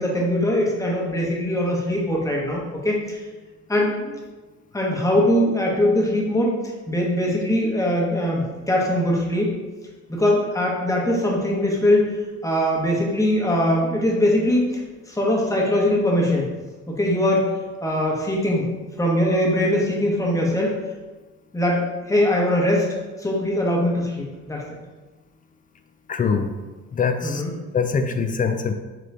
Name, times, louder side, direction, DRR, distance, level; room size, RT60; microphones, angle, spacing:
voice 1, 0.0-3.2 3.7-4.2 4.7-9.5 10.1-12.1 12.4-14.8 15.1-16.5 16.9-17.5 17.8-18.7 19.0-20.7 21.5-22.9 23.2-24.6 27.2-27.6, left 1 dB, 10° left, -3 dB, 1.0 m, -21 dB
voice 2, 26.1-26.5 26.9-27.4 27.7-28.7, left 5 dB, 30° left, 6 dB, 0.4 m, -23 dB
3.8 x 3.1 x 3.3 m, 1.2 s
cardioid pair, 90°, 30 cm